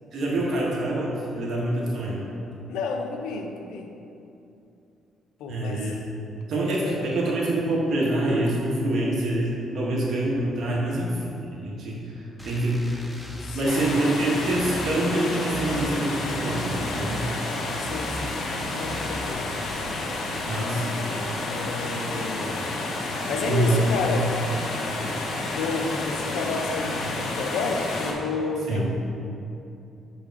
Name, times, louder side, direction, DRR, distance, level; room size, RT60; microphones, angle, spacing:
voice 1, 0.1-2.2 5.5-5.9 6.5-13.0 13.5-17.2 20.5-20.8 23.4-23.9 28.7-28.9, right 1 dB, 65° right, -4 dB, 1.4 m, -26 dB
voice 2, 2.7-3.9 5.4-6.0 6.5-7.1 11.0-11.3 13.4-13.8 17.8-18.4 18.7-19.5 21.4-22.7 23.3-24.3 25.4-28.9, left 4 dB, 90° left, 4 dB, 0.5 m, -31 dB
sound 1, 12.4-19.3, equal, 5° left, 0.7 m, -39 dB
sound 2, 13.6-28.1, left 2 dB, 70° left, 0.8 m, -30 dB
6.2 x 3.9 x 4.7 m, 2.8 s
cardioid pair, 90°, 0 cm